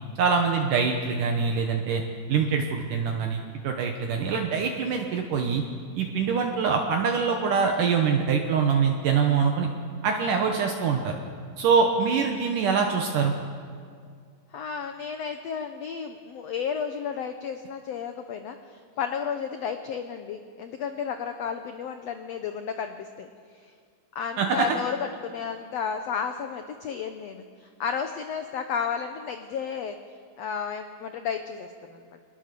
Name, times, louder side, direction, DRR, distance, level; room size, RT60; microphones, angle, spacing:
voice 1, 0.2-2.0 2.3-5.6 6.0-9.7 10.0-11.1 11.6-13.3 24.4-24.7, right 5 dB, 70° right, 3 dB, 2.6 m, -24 dB
voice 2, 14.5-23.3 23.5-23.7 24.1-30.0 30.4-32.0, left 7 dB, 90° left, 7 dB, 1.4 m, -32 dB
23.0 x 20.0 x 6.8 m, 2.2 s
omnidirectional pair, 4.2 m